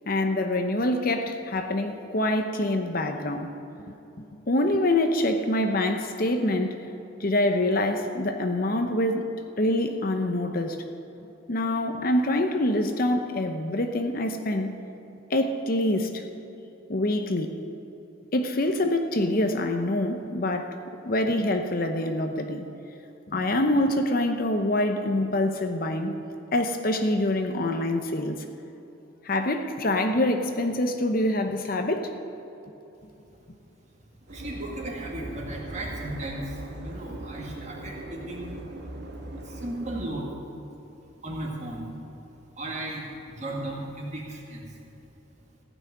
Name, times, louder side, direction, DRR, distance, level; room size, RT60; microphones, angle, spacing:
voice 1, 0.1-3.5 3.9-4.0 4.5-6.8 7.2-9.3 9.6-10.8 11.5-14.7 15.3-16.2 16.9-17.5 18.3-20.8 21.0-22.7 23.3-26.1 26.5-28.4 29.2-32.1, left 1 dB, 45° left, 6 dB, 0.8 m, -25 dB
voice 2, 34.3-36.6 36.8-38.6 39.4-40.3 41.2-41.9 42.6-44.6, right 1 dB, 35° right, -2 dB, 2.0 m, -35 dB
sound 1, 34.3-40.1, right 1 dB, 50° right, 1.4 m, -39 dB
15.5 x 6.2 x 9.3 m, 3.0 s
head